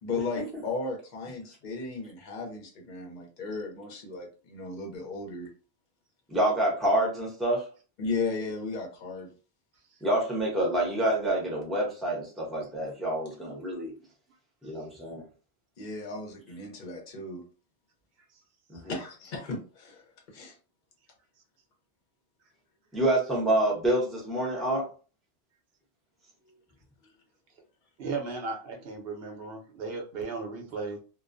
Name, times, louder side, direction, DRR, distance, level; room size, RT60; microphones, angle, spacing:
voice 1, 0.0-5.5 8.0-9.3 15.8-17.4 18.7-20.5 26.5-26.6, left 3 dB, 50° left, 1 dB, 0.8 m, -35 dB
voice 2, 6.3-7.7 10.0-13.9 14.6-15.2 18.7-18.9 22.9-24.9, right 1 dB, ahead, -3 dB, 0.7 m, -27 dB
voice 3, 28.0-31.0, right 4 dB, 70° right, 1 dB, 0.9 m, -35 dB
2.3 x 2.1 x 2.5 m, 0.36 s
omnidirectional pair, 1.1 m